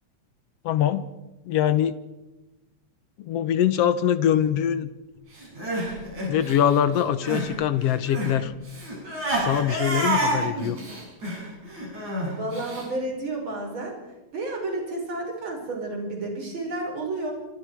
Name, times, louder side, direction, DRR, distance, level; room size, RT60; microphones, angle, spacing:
voice 1, 0.6-1.1 1.5-1.9 3.2-4.9 6.3-8.5 9.4-10.8, left 10 dB, 65° left, 13 dB, 2.0 m, -23 dB
Crying sobbing, 5.4-7.5 7.8-12.8, right 1 dB, 70° right, 9.4 m, -29 dB
voice 2, 12.3-14.0 14.3-17.3, right 2 dB, 40° right, 1 dB, 5.9 m, -31 dB
27.0 x 26.5 x 4.8 m, 1.0 s
omnidirectional pair, 3.4 m